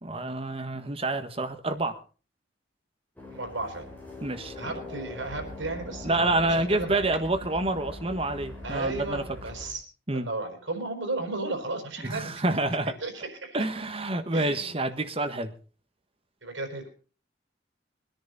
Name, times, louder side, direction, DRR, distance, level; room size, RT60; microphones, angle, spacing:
voice 1, 0.0-2.0 4.2-4.7 6.0-9.2 10.1-10.3 12.0-12.9 13.5-15.5, right 2 dB, 30° right, 7 dB, 1.4 m, -28 dB
sound 1, 3.2-9.7, left 2 dB, 10° left, 3.8 m, -42 dB
voice 2, 3.3-3.9 4.6-7.0 8.6-9.8 10.1-12.4 13.0-13.1 13.4-13.6 14.3-14.8 16.4-16.9, right 2 dB, 80° right, 4 dB, 4.8 m, -34 dB
22.0 x 10.5 x 4.1 m, 0.37 s
head